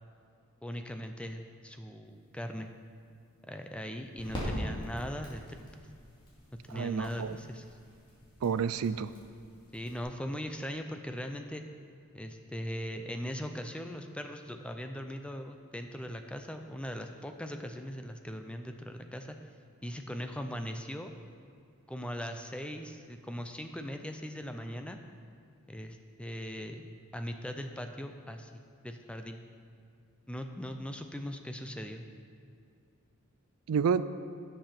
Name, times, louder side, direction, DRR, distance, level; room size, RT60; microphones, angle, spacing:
voice 1, 0.6-2.7 3.5-5.9 6.7-7.6 9.7-11.6 12.1-19.4 19.8-21.1 21.9-25.0 25.7-29.4 30.3-32.0, equal, 5° left, 6 dB, 0.4 m, -40 dB
sound 1, 2.1-10.0, equal, 20° left, 2.5 m, -43 dB
voice 2, 6.7-7.4 8.4-9.1 33.7-34.0, right 6 dB, 75° right, 14 dB, 0.4 m, -29 dB
10.5 x 6.8 x 5.8 m, 2.4 s
head